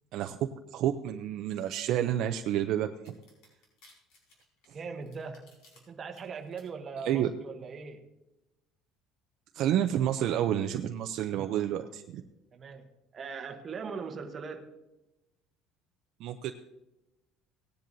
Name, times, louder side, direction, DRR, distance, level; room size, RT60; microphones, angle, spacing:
voice 1, 0.7-3.1 7.0-7.3 9.5-12.2 16.2-16.5, right 11 dB, 50° right, 6 dB, 0.5 m, -29 dB
sound 1, 3.1-5.8 6.1-6.6, left 2 dB, 65° left, 4.4 m, -60 dB
voice 2, 4.7-8.1 12.5-14.8, right 5 dB, 25° right, 4 dB, 1.0 m, -41 dB
17.5 x 10.0 x 2.7 m, 0.97 s
cardioid pair, 175°, 0 cm